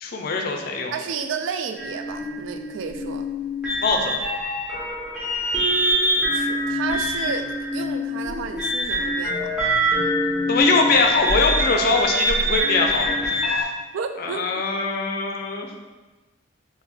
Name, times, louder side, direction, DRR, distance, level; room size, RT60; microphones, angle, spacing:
voice 1, 0.0-0.9 3.8-4.1 10.5-13.7 14.2-15.7, left 4 dB, 50° left, 3 dB, 0.4 m, -22 dB
voice 2, 0.9-3.3 6.2-9.5 13.9-14.6, right 6 dB, 70° right, 8 dB, 0.3 m, -32 dB
sound 1, 1.8-13.6, equal, 5° right, 0.8 m, -24 dB
3.2 x 2.6 x 3.5 m, 1.2 s
head